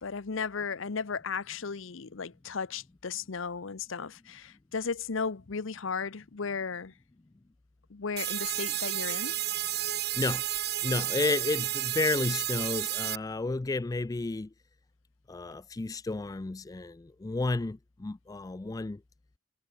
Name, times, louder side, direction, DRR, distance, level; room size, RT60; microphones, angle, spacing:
voice 1, 0.0-6.9 7.9-9.4, left 5 dB, 65° left, 0.8 m, -35 dB
sound 1, 8.2-13.2, right 14 dB, 50° right, 1.2 m, -32 dB
voice 2, 9.9-10.4 10.8-14.5 15.3-19.0, left 3 dB, 15° left, 0.3 m, -32 dB
head